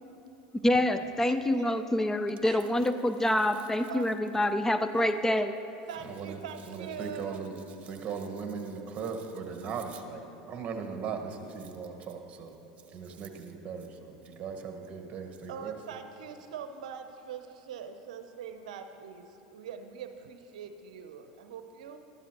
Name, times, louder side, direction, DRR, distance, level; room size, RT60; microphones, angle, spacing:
voice 1, 0.6-5.5, left 1 dB, 10° left, 9 dB, 0.4 m, -26 dB
voice 2, 1.3-1.8 2.4-2.7 3.9-4.1 5.0-5.2 5.9-7.4 15.5-22.0, right 7 dB, 80° right, 7 dB, 0.6 m, -43 dB
voice 3, 6.0-12.6 12.9-15.8, right 5 dB, 35° right, 4 dB, 1.4 m, -39 dB
13.0 x 13.0 x 3.0 m, 2.8 s
hypercardioid pair, 95°, 4 cm